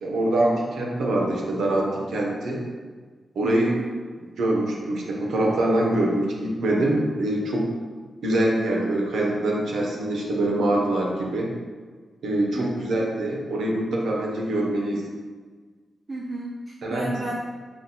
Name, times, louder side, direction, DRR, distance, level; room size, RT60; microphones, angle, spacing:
voice 1, 0.0-2.6 3.3-3.7 4.4-7.7 8.2-11.5 12.2-15.1 16.8-17.1, right 1 dB, 85° right, -2 dB, 0.9 m, -24 dB
voice 2, 3.4-3.9 12.6-13.0 16.1-17.4, right 2 dB, 40° right, -3 dB, 0.5 m, -33 dB
5.9 x 2.3 x 3.9 m, 1.5 s
cardioid pair, 90°, 0 cm